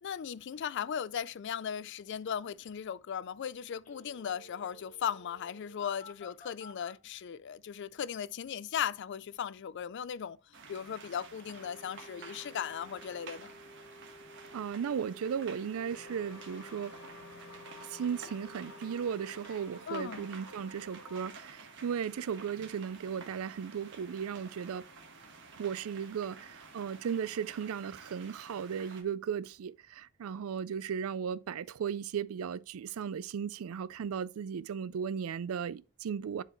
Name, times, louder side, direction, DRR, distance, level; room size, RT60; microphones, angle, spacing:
voice 1, 0.0-10.4 10.7-13.6 19.9-20.2, left 8 dB, 55° left, 0.4 m, -37 dB
Telephone, 3.8-7.0 11.4-19.6, left 1 dB, 35° left, 1.4 m, -54 dB
sound 1, 10.5-29.0, right 4 dB, 60° right, 1.4 m, -51 dB
voice 2, 14.5-17.0 17.9-24.9 25.6-36.4, right 7 dB, 75° right, 0.4 m, -36 dB
sound 2, 15.9-21.3, left 4 dB, 85° left, 0.8 m, -53 dB
11.0 x 4.7 x 3.0 m
head